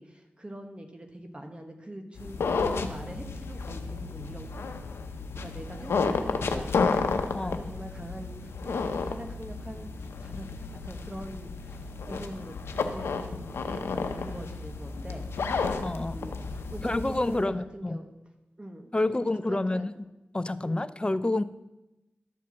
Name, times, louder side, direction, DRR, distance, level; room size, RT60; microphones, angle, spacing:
voice 1, 0.0-4.6 5.3-7.0 7.4-15.6 15.9-18.1 18.6-19.1 19.5-19.9 20.6-20.9, right 1 dB, 25° right, 5 dB, 1.3 m, -43 dB
sound 1, 2.2-17.4, left 4 dB, 90° left, 0.7 m, -32 dB
voice 2, 15.8-16.2 16.8-18.0 18.9-19.9 20.3-21.4, left 2 dB, 25° left, 15 dB, 0.5 m, -28 dB
12.0 x 4.6 x 7.1 m, 0.97 s
cardioid pair, 45°, 4 cm